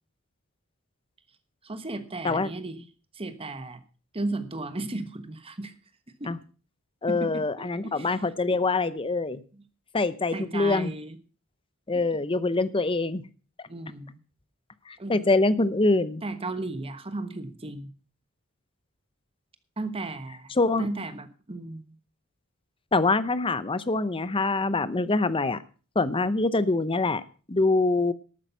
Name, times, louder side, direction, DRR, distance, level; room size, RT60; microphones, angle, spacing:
voice 1, 1.6-2.8 3.1-3.8 4.1-5.7 6.2-6.3 7.1-8.2 9.5-9.6 10.3-11.2 13.7-14.2 15.0-15.3 16.2-17.9 19.8-20.5 20.8-22.0, right 2 dB, 25° right, 11 dB, 1.2 m, -35 dB
voice 2, 7.0-9.4 9.9-10.9 11.9-13.2 14.9-16.2 20.6-20.9 22.9-25.6 26.0-27.2 27.5-28.1, left 3 dB, 25° left, 15 dB, 0.7 m, -24 dB
12.5 x 8.8 x 5.6 m, 0.38 s
head